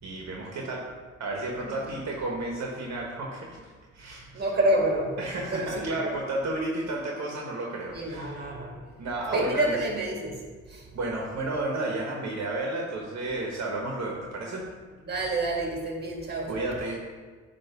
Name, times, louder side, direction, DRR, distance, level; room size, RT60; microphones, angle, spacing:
voice 1, 0.0-0.9 1.2-3.6 3.9-4.5 5.2-8.5 9.0-9.8 10.9-14.6 16.5-17.0, right 2 dB, 60° right, -1 dB, 1.2 m, -32 dB
voice 2, 4.3-5.2 5.5-5.9 7.9-8.8 9.3-10.4 10.7-10.9 15.0-16.5, right 1 dB, 35° right, 0 dB, 1.9 m, -28 dB
9.1 x 3.1 x 5.6 m, 1.5 s
cardioid pair, 90°, 30 cm